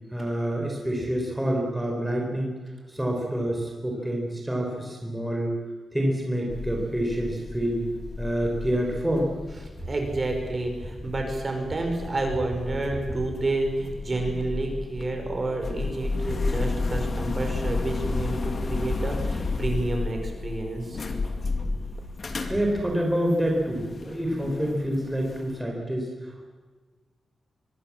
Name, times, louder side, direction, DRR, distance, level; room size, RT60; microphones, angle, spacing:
voice 1, 0.1-2.6 2.9-5.5 5.9-7.8 8.2-9.3 22.4-26.5, equal, 5° right, 0 dB, 4.3 m, -27 dB
sound 1, 6.5-25.4, left 3 dB, 40° left, 2.3 m, -32 dB
voice 2, 9.8-21.0, right 2 dB, 30° right, 3 dB, 5.1 m, -29 dB
25.0 x 22.0 x 7.5 m, 1.3 s
wide cardioid pair, 170°, 0 cm